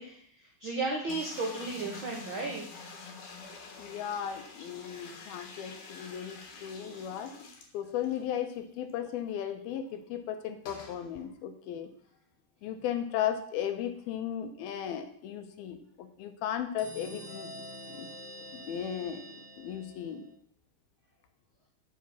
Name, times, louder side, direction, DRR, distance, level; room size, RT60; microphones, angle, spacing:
voice 1, 0.0-2.7 3.0-3.1, right 3 dB, 85° right, 0 dB, 1.1 m, -34 dB
sound 1, 1.1-8.2 8.6-8.7 8.9-9.0 10.6-11.0, left 4 dB, 60° left, 2.6 m, -47 dB
voice 2, 3.8-7.3 7.7-11.9 12.6-17.5 17.9-18.1 18.5-19.3 19.6-20.3, left 9 dB, 75° left, 8 dB, 2.7 m, -36 dB
sound 2, 16.8-20.3, equal, 15° right, 2.4 m, -46 dB
7.6 x 7.0 x 7.0 m, 0.62 s
omnidirectional pair, 4.6 m